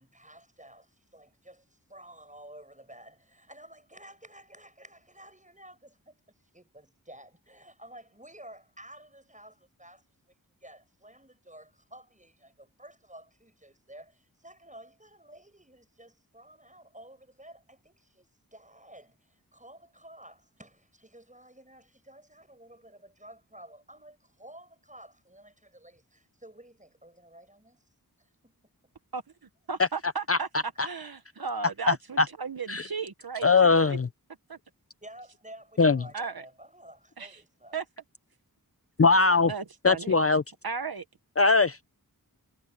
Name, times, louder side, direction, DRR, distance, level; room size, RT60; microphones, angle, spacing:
voice 1, 0.0-10.3 10.6-27.8 28.2-28.9 35.0-37.8, right 1 dB, 20° right, 6.8 m, -52 dB
voice 2, 29.7-34.0 34.5-34.6 36.1-36.4 37.2-37.4 37.7-37.8 39.5-40.2 40.6-41.0, right 5 dB, 70° right, 1.0 m, -35 dB
voice 3, 31.9-32.3 32.7-32.9 33.4-34.1 35.8-36.0 39.0-39.5 39.8-40.4 41.4-41.8, left 4 dB, 40° left, 0.6 m, -21 dB
wide cardioid pair, 50°, 38 cm